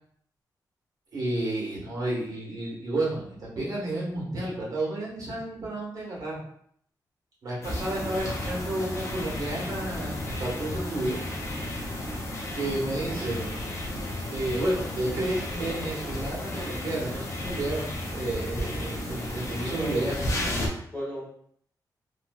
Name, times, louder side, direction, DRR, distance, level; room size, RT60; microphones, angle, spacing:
voice 1, 1.1-6.4 7.4-11.2 12.5-13.6 14.3-20.3, right 1 dB, 50° right, -5 dB, 1.4 m, -31 dB
sound 1, 7.6-20.7, left 1 dB, 40° left, 0.6 m, -33 dB
voice 2, 19.6-20.5 20.9-21.3, equal, 15° left, -8 dB, 1.4 m, -37 dB
2.9 x 2.7 x 2.3 m, 0.65 s
wide cardioid pair, 130°, 7 cm